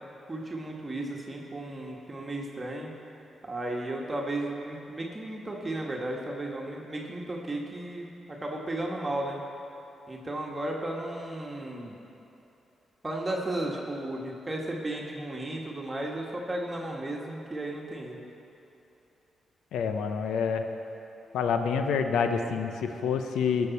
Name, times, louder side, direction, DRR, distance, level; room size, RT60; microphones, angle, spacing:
voice 1, 0.0-2.9 3.5-9.4 10.1-12.0 13.0-18.2, right 1 dB, 30° right, -1 dB, 1.8 m, -34 dB
voice 2, 19.7-20.6 21.3-23.7, left 6 dB, 80° left, 7 dB, 0.7 m, -27 dB
19.5 x 6.8 x 4.2 m, 2.9 s
supercardioid pair, 45°, 0 cm